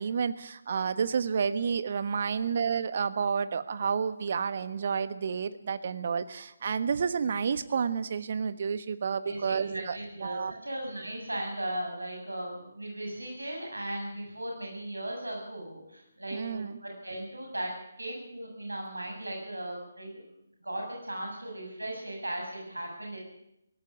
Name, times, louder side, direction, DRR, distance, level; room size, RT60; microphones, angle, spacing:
voice 1, 0.0-10.5 16.3-16.8, right 6 dB, 45° right, 13 dB, 1.3 m, -30 dB
voice 2, 9.2-17.7 18.0-20.3 20.6-23.2, right 1 dB, 80° right, 0 dB, 7.6 m, -37 dB
17.5 x 15.5 x 9.8 m, 0.81 s
figure-of-eight pair, 145°, 0 cm